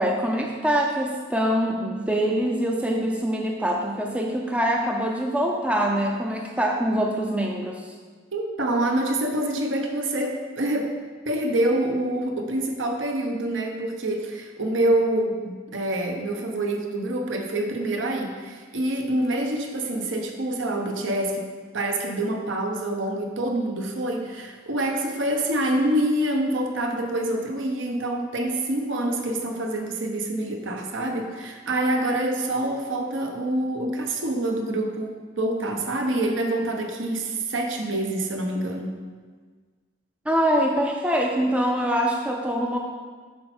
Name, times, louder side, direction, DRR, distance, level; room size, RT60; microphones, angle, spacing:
voice 1, 0.0-7.9 40.3-42.8, equal, 5° right, 1 dB, 0.5 m, -24 dB
voice 2, 8.3-10.9 11.2-21.5 21.7-39.0, right 1 dB, 70° right, 3 dB, 1.0 m, -26 dB
8.4 x 5.6 x 4.4 m, 1.5 s
head